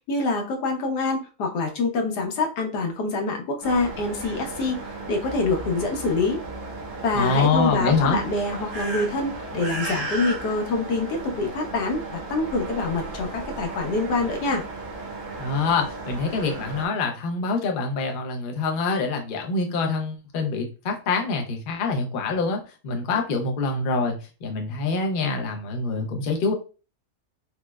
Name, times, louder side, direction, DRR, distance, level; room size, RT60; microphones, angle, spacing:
voice 1, 0.0-4.8 5.1-6.4 7.0-12.0 12.3-14.6, left 3 dB, 85° left, 2 dB, 1.3 m, -25 dB
sound 1, 3.6-16.9, right 2 dB, 50° right, 0.9 m, -35 dB
voice 2, 7.1-8.2 15.4-24.2 24.4-26.5, left 4 dB, 60° left, 2 dB, 0.5 m, -25 dB
4.4 x 2.0 x 2.2 m, 0.33 s
omnidirectional pair, 1.7 m